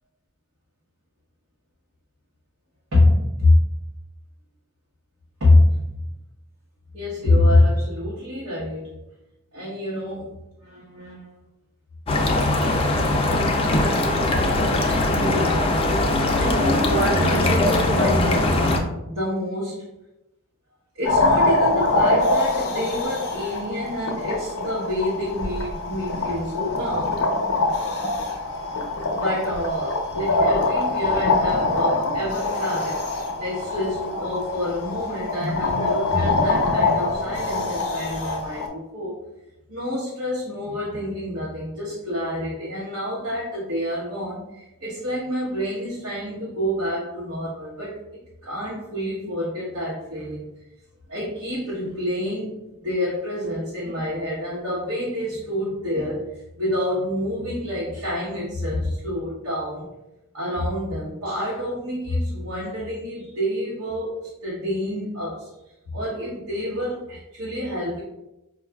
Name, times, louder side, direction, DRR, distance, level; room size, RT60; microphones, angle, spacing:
voice 1, 2.9-3.6 5.4-5.8 6.9-8.9 9.5-11.4 14.6-15.9 16.4-18.6 19.1-19.9 20.9-27.3 29.1-33.0 33.4-39.2 39.7-48.0 48.4-50.5 51.1-59.9 60.3-64.2 64.4-65.5 65.9-68.0, left 1 dB, 80° right, -8 dB, 1.0 m, -26 dB
sound 1, 12.1-18.8, left 2 dB, 25° left, 0.4 m, -21 dB
sound 2, 21.0-38.7, left 2 dB, 75° left, 0.6 m, -24 dB
4.5 x 2.3 x 2.2 m, 0.92 s
head